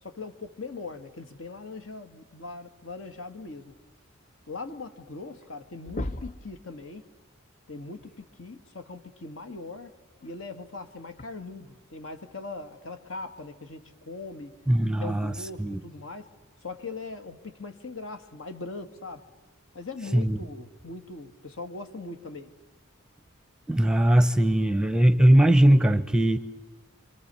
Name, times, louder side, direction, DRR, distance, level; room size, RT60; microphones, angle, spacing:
voice 1, 0.0-3.8 4.5-7.1 7.7-9.9 10.2-14.6 15.0-16.3 16.6-19.3 19.7-22.5, left 3 dB, 70° left, 8 dB, 2.0 m, -40 dB
sound 1, 4.9-5.0 5.3-5.6 5.8-6.5 8.2-8.3 10.2-10.3 11.2-11.3, left 1 dB, 40° left, 0.9 m, -35 dB
voice 2, 14.7-15.3 15.6-15.8 20.1-20.4 23.7-26.4, right 1 dB, 5° right, 11 dB, 0.8 m, -20 dB
27.0 x 25.0 x 7.0 m, 1.3 s
head